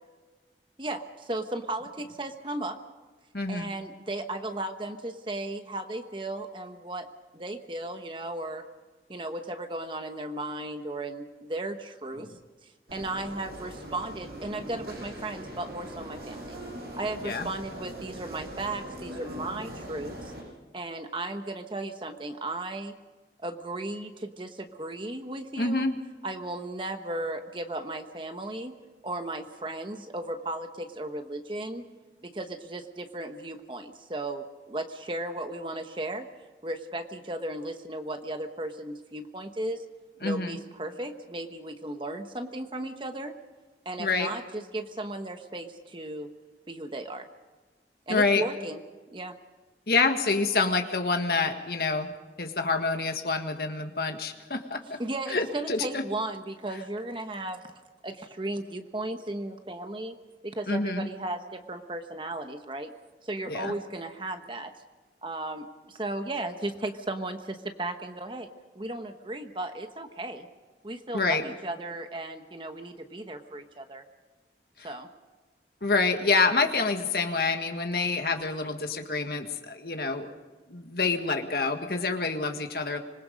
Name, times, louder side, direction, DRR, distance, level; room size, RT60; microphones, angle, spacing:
voice 1, 0.8-2.8 3.5-7.1 7.3-8.6 9.1-12.3 12.6-16.6 16.9-20.3 20.7-22.9 23.4-25.9 26.2-28.7 29.0-31.8 32.2-36.3 36.6-39.8 40.2-43.3 43.8-46.3 46.7-47.3 48.1-48.8 49.1-49.3 55.0-60.1 60.4-62.9 63.2-64.7 65.2-68.5 68.7-70.5 70.8-74.0 74.8-75.1, right 2 dB, 30° right, 7 dB, 1.1 m, -35 dB
voice 2, 3.3-3.7 17.2-17.5 25.6-25.9 40.2-40.6 44.0-44.3 48.1-48.4 49.9-52.1 52.4-55.0 55.3-56.0 60.7-61.1 63.5-63.8 71.1-71.4 74.8-74.9 75.8-80.3 80.7-83.0, left 3 dB, 60° left, 5 dB, 1.8 m, -27 dB
sound 1, 12.9-20.4, right 1 dB, 60° right, 6.8 m, -41 dB
26.0 x 21.0 x 5.2 m, 1.3 s
head